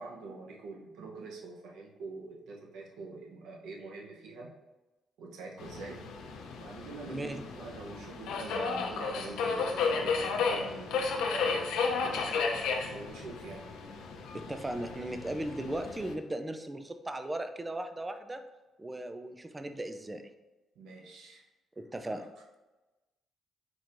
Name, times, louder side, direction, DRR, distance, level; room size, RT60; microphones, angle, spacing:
voice 1, 0.0-4.6 5.2-6.1 6.6-12.3 12.8-13.7 20.8-21.4 22.1-22.2, right 3 dB, 85° right, 0 dB, 0.8 m, -45 dB
Subway metro underground, 5.6-16.1, left 4 dB, 85° left, 0.6 m, -33 dB
voice 2, 7.1-7.4 14.3-18.4 18.8-20.2 21.8-22.3, right 1 dB, 20° right, 7 dB, 0.4 m, -37 dB
4.5 x 4.3 x 2.6 m, 1.1 s
cardioid pair, 90°, 0 cm